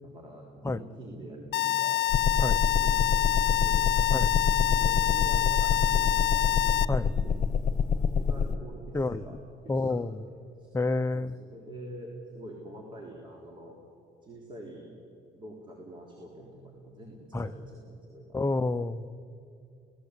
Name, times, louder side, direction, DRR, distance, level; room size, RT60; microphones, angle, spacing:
voice 1, 0.0-2.0 2.6-4.0 4.7-7.0 7.2-7.8 8.2-9.4 9.6-10.8 11.1-13.8 14.2-14.9 15.4-18.4, right 1 dB, 30° right, 0 dB, 3.6 m, -46 dB
sound 1, 1.5-6.8, left 16 dB, 85° left, 0.6 m, -26 dB
sound 2, 2.1-8.6, left 6 dB, 45° left, 1.3 m, -26 dB
voice 2, 9.7-10.2 10.7-11.4 17.3-17.5 18.3-19.1, left 2 dB, 15° left, 10 dB, 0.8 m, -29 dB
28.5 x 18.0 x 8.3 m, 2.4 s
cardioid pair, 110°, 17 cm